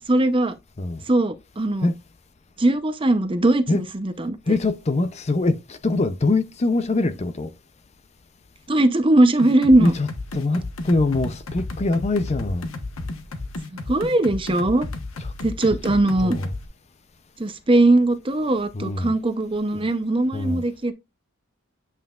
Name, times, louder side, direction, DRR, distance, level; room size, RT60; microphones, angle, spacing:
voice 1, 0.1-0.5 1.1-1.9 2.6-4.6 8.7-9.9 13.9-14.9 15.4-16.4 17.4-20.9, right 2 dB, 25° right, 0.7 m, -20 dB
voice 2, 4.5-7.5 9.8-12.7 15.2-15.3 15.6-16.5 18.7-19.1 20.3-20.6, left 2 dB, 30° left, 0.5 m, -24 dB
sound 1, 9.4-16.7, left 2 dB, 85° left, 1.1 m, -33 dB
9.0 x 5.6 x 2.4 m
head